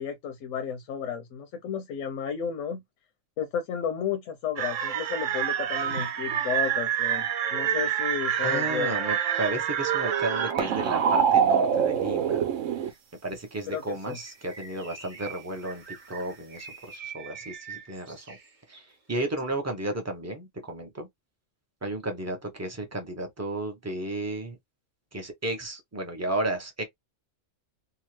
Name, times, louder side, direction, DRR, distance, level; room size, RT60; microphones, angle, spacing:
voice 1, 0.0-2.8 3.4-9.0 13.7-14.2, left 7 dB, 80° left, 1.0 m, -33 dB
sound 1, 4.6-12.9, right 8 dB, 80° right, 1.0 m, -26 dB
voice 2, 8.4-12.4 12.8-12.9 13.2-18.4 18.7-18.8 19.1-21.1 21.8-24.6 25.1-26.8, right 2 dB, 15° right, 0.6 m, -33 dB
Bird, 14.0-18.9, right 5 dB, 40° right, 1.0 m, -45 dB
2.8 x 2.3 x 3.0 m
omnidirectional pair, 1.3 m